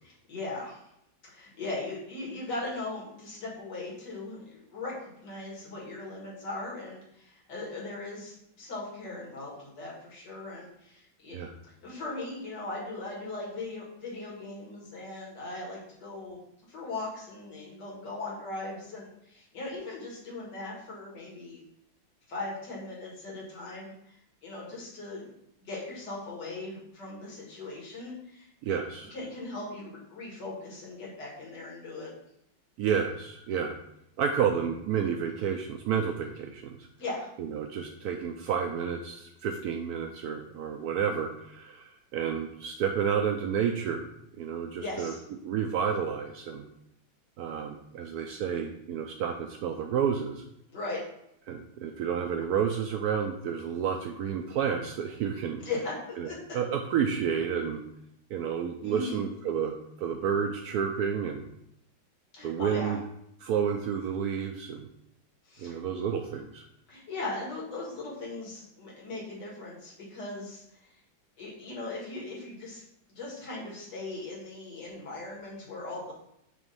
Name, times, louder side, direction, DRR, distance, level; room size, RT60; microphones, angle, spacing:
voice 1, 0.0-0.8 1.3-11.4 11.8-16.4 16.7-21.6 22.3-24.1 24.4-25.3 25.6-28.8 29.1-32.1 37.0-37.3 44.8-45.2 50.7-51.0 55.6-56.4 58.8-59.2 62.3-63.0 65.4-65.7 66.9-70.9 71.4-72.8 73.1-76.1, left 2 dB, 60° left, -4 dB, 2.5 m, -39 dB
voice 2, 28.6-29.1 32.8-33.8 34.2-36.8 37.4-44.1 44.4-45.1 45.4-46.7 47.4-50.4 51.5-55.6 56.2-57.8 58.3-61.5 62.4-63.0 63.4-64.9 65.6-66.6, right 7 dB, 85° right, 3 dB, 0.8 m, -30 dB
6.2 x 3.0 x 5.3 m, 0.77 s
omnidirectional pair, 2.1 m